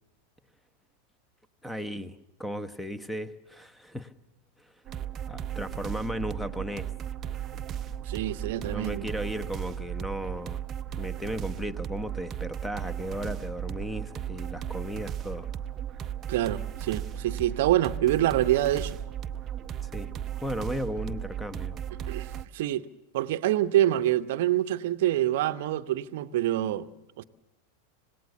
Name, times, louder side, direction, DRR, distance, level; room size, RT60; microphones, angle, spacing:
voice 1, 1.6-4.1 5.3-6.9 8.6-10.6 11.0-15.5 19.8-20.1 20.4-21.8, equal, 5° left, 1.1 m, -35 dB
sound 1, 4.9-22.4, right 10 dB, 30° right, 0.7 m, -36 dB
voice 2, 8.1-9.1 16.3-19.0 22.1-22.8 23.1-26.9 27.2-27.3, right 13 dB, 50° right, 0.9 m, -26 dB
26.5 x 18.5 x 6.7 m
figure-of-eight pair, 90°, 0 cm